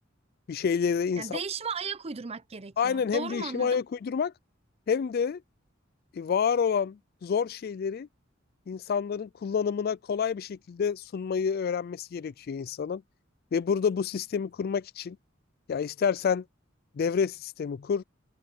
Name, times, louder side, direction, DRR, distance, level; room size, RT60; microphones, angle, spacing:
voice 1, 0.5-1.4 2.8-4.3 4.9-5.4 6.1-8.1 8.7-13.0 13.5-15.2 15.7-16.4 17.0-18.0, left 6 dB, 50° left, 0.3 m, -28 dB
voice 2, 1.2-3.8, right 5 dB, 30° right, 0.7 m, -36 dB
head